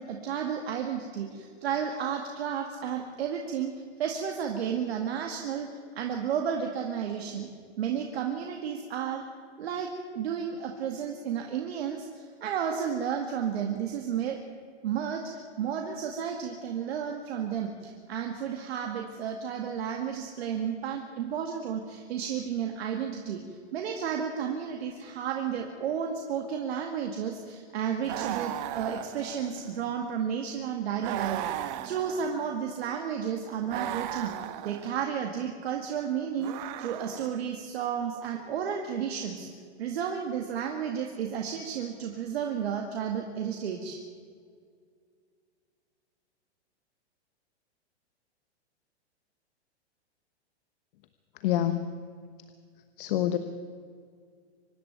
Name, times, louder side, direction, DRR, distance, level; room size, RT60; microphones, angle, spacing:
voice 1, 0.0-7.5 7.8-9.2 9.6-14.4 14.8-34.3 34.6-39.5 39.8-44.0, right 8 dB, 65° right, 2 dB, 2.2 m, -32 dB
sound 1, 28.0-29.8 31.0-32.6 33.7-35.0 36.4-37.5, right 13 dB, 40° right, 1.1 m, -36 dB
voice 2, 51.4-51.8 53.0-53.4, left 12 dB, 50° left, 9 dB, 1.2 m, -26 dB
25.0 x 11.0 x 9.5 m, 2.1 s
hypercardioid pair, 135°, 34 cm